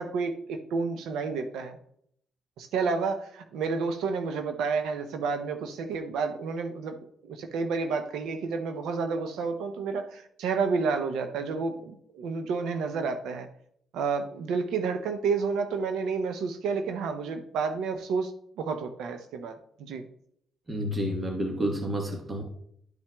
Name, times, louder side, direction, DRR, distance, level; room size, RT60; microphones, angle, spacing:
voice 1, 0.0-1.8 2.6-7.0 7.2-13.5 13.9-18.3 18.6-20.0, right 5 dB, 85° right, 8 dB, 0.6 m, -30 dB
voice 2, 20.7-22.4, equal, 30° right, 1 dB, 1.2 m, -30 dB
12.0 x 5.8 x 2.2 m, 0.70 s
cardioid pair, 90°, 0 cm